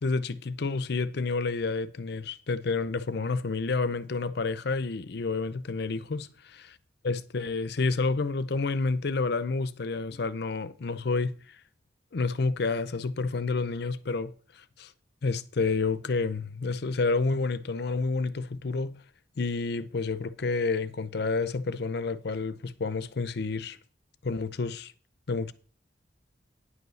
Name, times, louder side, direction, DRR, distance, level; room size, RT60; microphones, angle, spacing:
voice 1, 0.0-6.3 7.0-11.3 12.1-14.3 14.8-14.9 15.2-19.0 19.4-23.8 24.2-24.9 25.3-25.5, left 4 dB, 65° left, 0.6 m, -29 dB
9.8 x 5.5 x 6.3 m
head